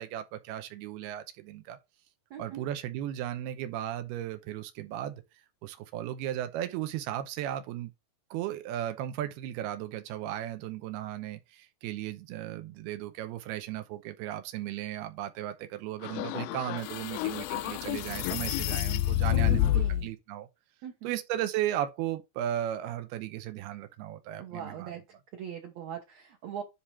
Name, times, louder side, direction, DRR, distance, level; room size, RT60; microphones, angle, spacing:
voice 1, 0.0-1.8 2.4-5.2 5.6-7.9 8.3-20.5 21.0-24.9, right 12 dB, 90° right, 2.8 m, -35 dB
voice 2, 2.3-2.7 19.5-20.1 20.8-21.2 24.4-25.0 25.3-26.6, right 9 dB, 70° right, 1.7 m, -40 dB
sound 1, 16.0-20.1, left 14 dB, 85° left, 2.1 m, -29 dB
10.0 x 3.6 x 4.3 m
omnidirectional pair, 4.5 m